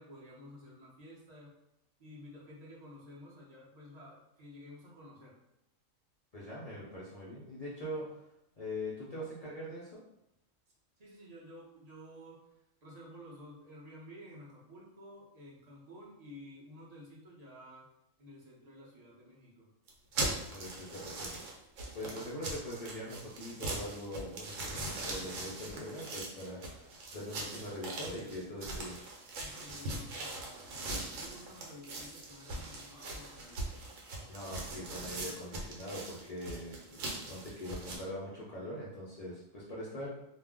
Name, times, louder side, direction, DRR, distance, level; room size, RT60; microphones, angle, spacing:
voice 1, 0.0-1.5 2.0-5.4 11.0-12.4 12.8-17.9 18.2-19.7 29.3-33.7, left 1 dB, 40° right, -5 dB, 0.6 m, -52 dB
voice 2, 6.3-8.3 8.6-10.0 20.5-21.3 21.9-29.0 29.5-29.6 34.3-40.1, left 1 dB, 55° left, -6 dB, 0.4 m, -42 dB
sound 1, 19.9-38.0, right 2 dB, 75° right, 1.0 m, -41 dB
2.4 x 2.0 x 3.5 m, 0.82 s
omnidirectional pair, 1.4 m